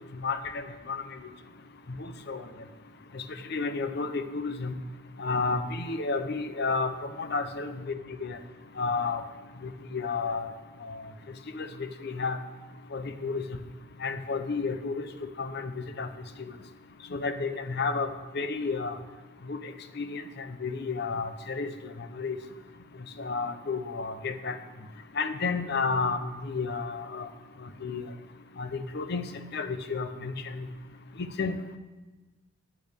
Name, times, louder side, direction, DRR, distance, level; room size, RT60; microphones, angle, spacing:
voice 1, 0.2-1.0 2.0-2.4 3.1-3.2 3.5-4.7 5.2-8.4 8.8-9.2 9.6-10.5 10.8-11.0 11.5-11.7 12.0-12.4 12.9-13.4 14.0-15.7 16.0-16.1 17.1-18.1 18.3-19.0 19.5-21.7 22.1-22.4 23.2-24.6 25.2-27.3 27.8-28.0 28.6-29.2 29.5-30.7 31.2-31.8, left 4 dB, 50° left, 10 dB, 0.6 m, -31 dB
13.5 x 8.7 x 3.4 m, 1.2 s
head